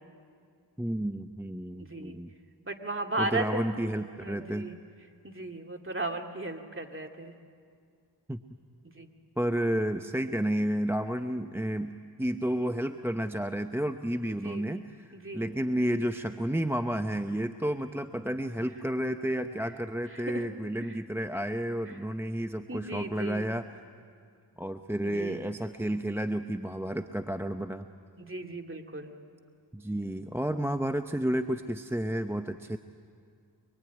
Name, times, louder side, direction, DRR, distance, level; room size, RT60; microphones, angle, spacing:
voice 1, 0.8-2.3 3.2-4.7 8.3-8.4 9.4-15.1 15.3-23.8 24.6-27.9 29.7-32.8, right 1 dB, 5° right, 8 dB, 0.8 m, -31 dB
voice 2, 1.8-2.2 2.7-3.7 4.2-4.8 5.2-7.3 8.9-9.1 14.4-14.8 15.1-15.5 20.1-20.4 22.7-23.5 25.0-25.4 28.2-29.1, right 2 dB, 30° right, 3 dB, 2.4 m, -36 dB
25.0 x 23.0 x 9.3 m, 2.2 s
cardioid pair, 45°, 43 cm